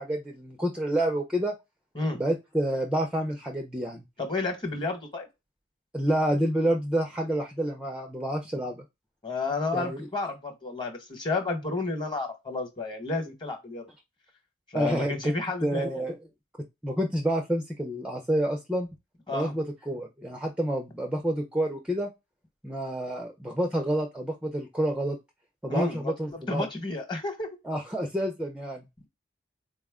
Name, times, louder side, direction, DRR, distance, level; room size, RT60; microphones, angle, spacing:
voice 1, 0.0-1.5 2.1-4.0 5.9-8.8 9.7-10.1 14.7-16.2 16.8-18.9 19.3-22.1 22.6-25.2 25.6-26.7 27.6-28.9, right 1 dB, 5° right, 3 dB, 0.4 m, -28 dB
voice 2, 4.2-5.3 9.2-13.8 14.7-16.0 19.3-19.5 25.7-27.5, left 3 dB, 25° left, 5 dB, 1.1 m, -31 dB
4.1 x 2.1 x 3.5 m, 0.22 s
head